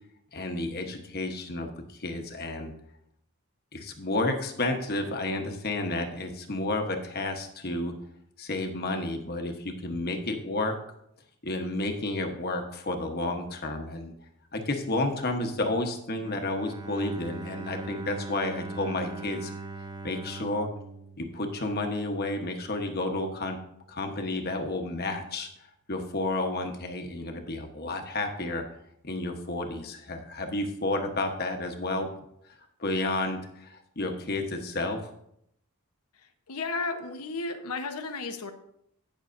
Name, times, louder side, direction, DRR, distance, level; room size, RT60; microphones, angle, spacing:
voice 1, 0.3-1.7 2.0-2.7 3.7-8.0 8.4-10.8 11.4-14.1 14.5-19.5 20.0-20.7 21.2-23.6 23.9-25.5 25.9-28.6 29.0-32.1 32.8-35.1, left 2 dB, 45° left, 4 dB, 1.1 m, -31 dB
Bowed string instrument, 16.2-22.2, right 2 dB, 20° right, 0.5 m, -40 dB
voice 2, 36.5-38.5, left 3 dB, 85° left, 7 dB, 1.0 m, -33 dB
17.5 x 6.3 x 2.6 m, 0.74 s
head